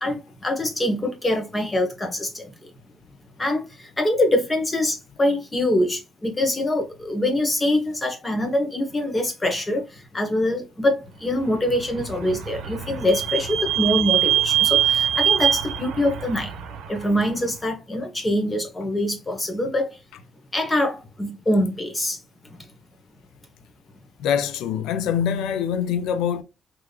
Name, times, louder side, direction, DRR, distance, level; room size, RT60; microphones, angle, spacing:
voice 1, 0.0-2.7 3.4-16.5 16.9-20.0 20.5-22.2 22.6-22.7, left 1 dB, 20° left, 1.2 m, -24 dB
Vehicle / Squeak, 11.7-17.3, right 10 dB, 90° right, 0.6 m, -23 dB
voice 2, 24.2-26.4, left 8 dB, 90° left, 0.4 m, -24 dB
3.5 x 2.8 x 2.4 m
cardioid pair, 90°, 0 cm